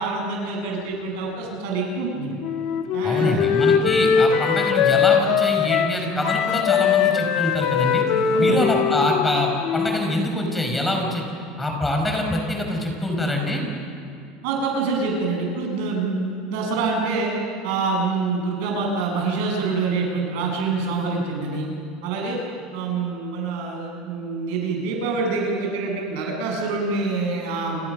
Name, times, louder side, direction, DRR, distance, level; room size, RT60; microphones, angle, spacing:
voice 1, 0.0-2.3 2.9-3.5 8.3-8.7 14.4-17.3 17.6-21.7 22.0-22.4 22.7-27.9, right 4 dB, 75° right, 1 dB, 7.9 m, -26 dB
Wind instrument woodwind instrument, 2.4-10.1, left 7 dB, 55° left, 2.0 m, -21 dB
voice 2, 3.0-8.0 8.4-11.2 11.6-13.6, left 1 dB, 10° left, 1 dB, 5.7 m, -24 dB
30.0 x 26.5 x 6.6 m, 2.5 s
supercardioid pair, 135°, 0 cm